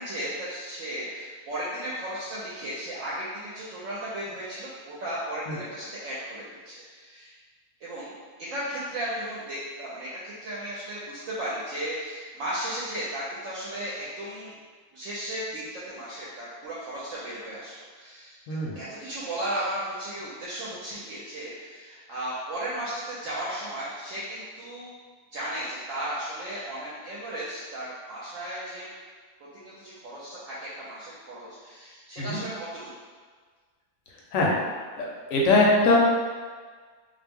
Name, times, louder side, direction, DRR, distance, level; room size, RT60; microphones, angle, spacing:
voice 1, 0.0-7.4 7.8-8.1 8.4-14.5 14.9-18.4 18.8-24.9 25.3-28.9 29.4-32.9, right 1 dB, 65° right, -8 dB, 0.9 m, -35 dB
voice 2, 18.5-18.8 32.2-32.4 34.3-34.5 35.0-36.0, left 2 dB, 70° left, -3 dB, 0.9 m, -22 dB
2.6 x 2.0 x 3.4 m, 1.5 s
omnidirectional pair, 1.6 m